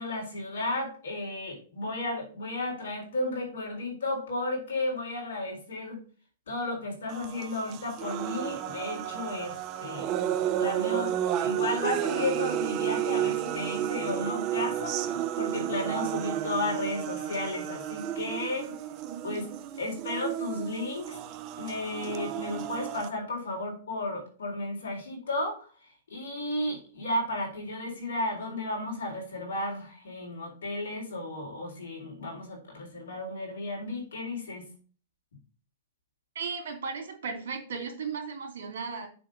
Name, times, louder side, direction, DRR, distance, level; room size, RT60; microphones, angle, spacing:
voice 1, 0.0-6.0 6.5-9.5 9.8-10.1 10.6-11.1 11.4-18.7 19.2-19.5 19.8-21.2 21.6-25.7 26.1-34.6, left 2 dB, 80° left, -1 dB, 3.9 m, -33 dB
sound 1, 7.1-23.1, right 11 dB, 40° right, 0.7 m, -32 dB
voice 2, 36.3-39.1, right 5 dB, 75° right, 3 dB, 2.6 m, -35 dB
7.0 x 3.7 x 5.4 m, 0.40 s
hypercardioid pair, 120°, 0 cm